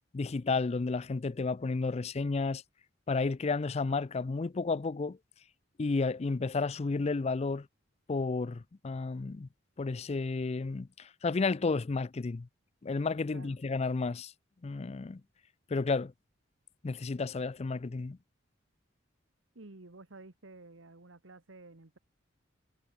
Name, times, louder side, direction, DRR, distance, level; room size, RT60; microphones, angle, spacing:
voice 1, 0.1-2.6 3.1-5.2 5.8-7.7 8.1-9.5 9.8-12.5 12.8-14.3 14.6-15.2 15.7-16.1 16.8-18.2, left 3 dB, 35° left, 0.4 m, -32 dB
voice 2, 19.5-22.0, right 2 dB, 90° right, 1.7 m, -51 dB
head